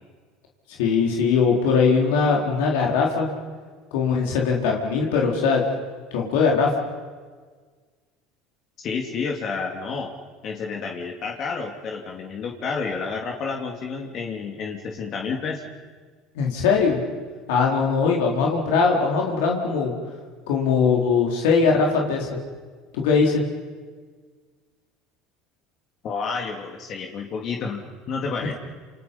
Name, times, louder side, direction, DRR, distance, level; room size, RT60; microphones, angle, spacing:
voice 1, 0.8-3.3 3.9-5.6 6.1-6.7 16.4-17.0 17.5-19.9 20.5-22.3 22.9-23.4, left 5 dB, 85° left, -1 dB, 4.1 m, -20 dB
voice 2, 8.8-10.1 10.4-15.6 26.0-28.5, left 5 dB, 50° left, 1 dB, 2.9 m, -30 dB
28.5 x 28.0 x 5.6 m, 1.5 s
supercardioid pair, 110°, 0 cm